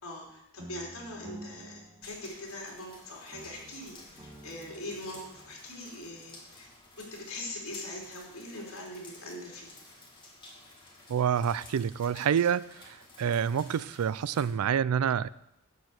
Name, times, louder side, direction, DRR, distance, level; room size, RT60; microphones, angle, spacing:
voice 1, 0.0-6.7 7.0-9.7, left 1 dB, 70° left, -2 dB, 3.6 m, -42 dB
sound 1, 0.6-2.9 3.3-5.6, right 1 dB, 20° right, 0.9 m, -50 dB
sound 2, 2.0-14.5, left 2 dB, 20° left, 2.2 m, -53 dB
voice 2, 11.1-15.3, right 8 dB, 85° right, 19 dB, 0.4 m, -28 dB
11.5 x 4.8 x 8.1 m, 0.84 s
head